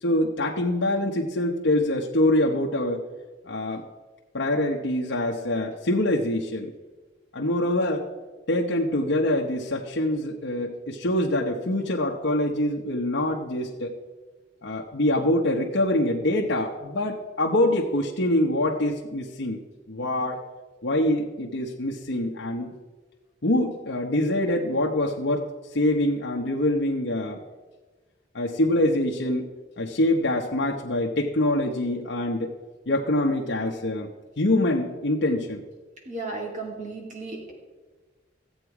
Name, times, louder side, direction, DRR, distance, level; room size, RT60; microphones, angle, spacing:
voice 1, 0.0-3.0 3.4-3.8 4.3-6.7 7.3-8.1 8.5-13.9 14.6-19.6 19.9-20.4 20.8-22.7 23.4-25.5 25.7-27.4 28.3-29.4 29.8-32.5 32.9-34.1 34.4-35.6, left 1 dB, 70° left, -1 dB, 1.0 m, -25 dB
voice 2, 36.1-37.5, right 3 dB, 45° right, 0 dB, 2.5 m, -34 dB
14.5 x 8.1 x 4.8 m, 1.3 s
head